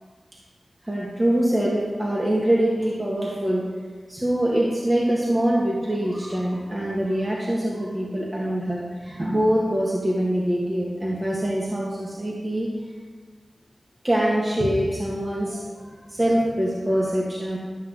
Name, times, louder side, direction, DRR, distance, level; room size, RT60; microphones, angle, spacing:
voice 1, 0.8-3.7 4.1-12.7 14.0-17.6, right 1 dB, 25° right, -4 dB, 2.3 m, -24 dB
13.0 x 6.0 x 8.2 m, 1.5 s
wide cardioid pair, 55°, 0 cm